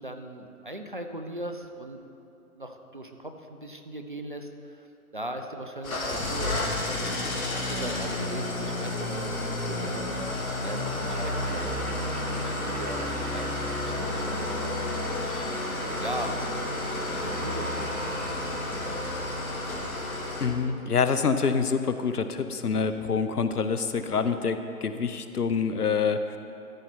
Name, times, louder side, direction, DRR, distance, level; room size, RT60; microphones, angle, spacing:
voice 1, 0.0-2.0 2.5-4.9 5.1-6.7 7.5-10.1 10.6-11.9 12.3-15.7 16.0-16.4 17.2-19.1, right 1 dB, 35° right, 5 dB, 0.4 m, -39 dB
Engine starting / Idling, 5.8-20.5, left 2 dB, 65° left, 1.7 m, -31 dB
sound 1, 11.0-20.0, right 4 dB, 75° right, 0.9 m, -43 dB
voice 2, 20.4-26.4, left 5 dB, 85° left, 10 dB, 0.7 m, -26 dB
13.5 x 5.7 x 4.4 m, 2.8 s
figure-of-eight pair, 140°, 45 cm